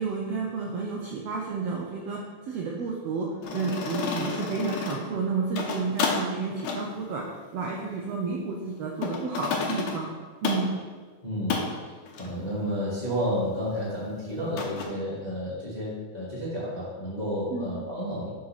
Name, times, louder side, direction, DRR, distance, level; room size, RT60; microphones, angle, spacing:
voice 1, 0.0-7.3 7.5-10.1 10.4-10.8 17.5-17.8, right 4 dB, 80° right, -1 dB, 1.5 m, -31 dB
sound 1, 3.4-5.1 5.4-6.2 6.6-6.8 9.0-10.0 10.4-10.7 11.5-11.7 12.1-12.3 14.6-14.8, left 5 dB, 80° left, 2.3 m, -30 dB
voice 2, 11.2-18.3, equal, 20° left, -8 dB, 1.1 m, -31 dB
5.4 x 5.2 x 5.8 m, 1.5 s
omnidirectional pair, 3.6 m